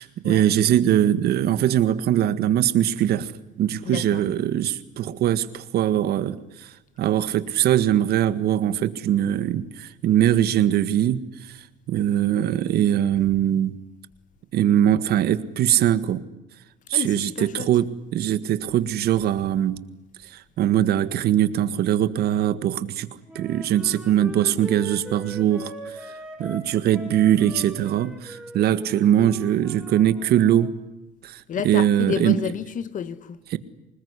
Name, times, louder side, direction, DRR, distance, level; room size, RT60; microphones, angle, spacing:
voice 1, 0.0-3.3 3.6-6.7 7.0-11.6 11.9-13.8 14.5-16.2 16.9-19.8 20.3-23.1 23.4-25.7 26.4-30.7 31.2-32.4 33.5-33.6, right 11 dB, 70° right, 1.7 m, -21 dB
voice 2, 3.8-4.2 16.9-17.7 31.5-33.4, left 8 dB, 50° left, 1.7 m, -30 dB
Wind instrument woodwind instrument, 23.3-30.7, right 1 dB, 5° right, 6.8 m, -40 dB
26.5 x 20.0 x 9.9 m
cardioid pair, 110°, 17 cm